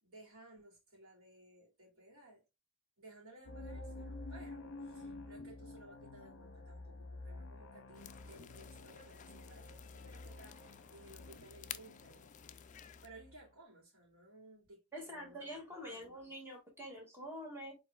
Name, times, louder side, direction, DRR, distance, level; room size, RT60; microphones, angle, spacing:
voice 1, 0.0-2.4 3.0-12.4 13.0-15.5 15.8-16.1, right 1 dB, 70° right, 2.7 m, -58 dB
sound 1, 3.5-13.4, left 2 dB, 50° left, 0.9 m, -50 dB
sound 2, 7.9-13.1, left 10 dB, 35° left, 0.3 m, -53 dB
voice 2, 14.9-17.8, equal, 10° right, 1.8 m, -46 dB
5.0 x 3.9 x 2.3 m
head